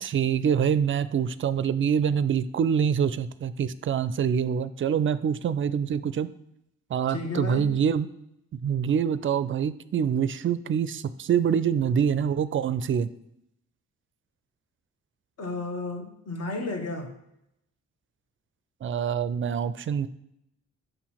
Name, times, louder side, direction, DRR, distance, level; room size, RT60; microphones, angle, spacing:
voice 1, 0.0-6.3 6.9-8.1 8.5-13.1 18.8-20.1, right 7 dB, 40° right, 15 dB, 0.4 m, -25 dB
voice 2, 7.1-7.7 15.4-17.1, left 2 dB, 50° left, 5 dB, 1.2 m, -32 dB
6.7 x 2.8 x 5.8 m, 0.80 s
hypercardioid pair, 45°, 33 cm